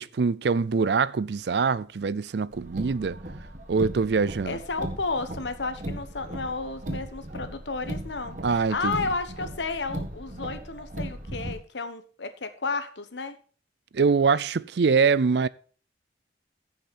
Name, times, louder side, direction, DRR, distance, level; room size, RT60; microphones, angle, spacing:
voice 1, 0.0-3.2 3.7-4.6 8.4-8.9 13.9-15.5, right 5 dB, 70° right, 0.5 m, -24 dB
Car, 2.5-11.5, right 1 dB, 45° right, 1.8 m, -37 dB
voice 2, 4.2-13.4, left 3 dB, 85° left, 1.2 m, -32 dB
15.0 x 5.9 x 4.3 m
head